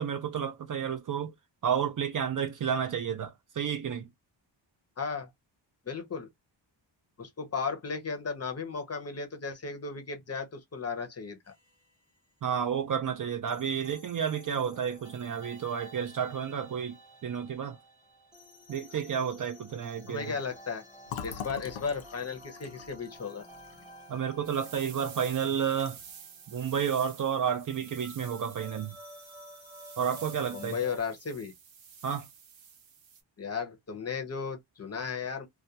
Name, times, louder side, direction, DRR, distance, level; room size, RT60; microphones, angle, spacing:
voice 1, 0.0-1.3 1.6-4.1 12.4-17.0 17.2-17.8 18.7-20.3 24.1-26.0 26.5-28.9 30.0-30.8 32.0-32.3, right 8 dB, 45° right, 0.4 m, -31 dB
voice 2, 5.0-5.3 5.9-6.3 7.2-11.4 20.1-20.8 21.2-23.5 30.5-31.5 33.4-35.5, left 5 dB, 35° left, 0.6 m, -35 dB
sound 1, 11.5-12.2 13.5-31.0, equal, 10° right, 0.9 m, -52 dB
Fill (with liquid), 21.1-24.7 25.1-25.2 25.5-26.1, left 8 dB, 85° left, 0.6 m, -43 dB
sound 2, 24.4-33.2, right 7 dB, 85° right, 0.8 m, -50 dB
2.3 x 2.2 x 2.7 m
wide cardioid pair, 160°, 45 cm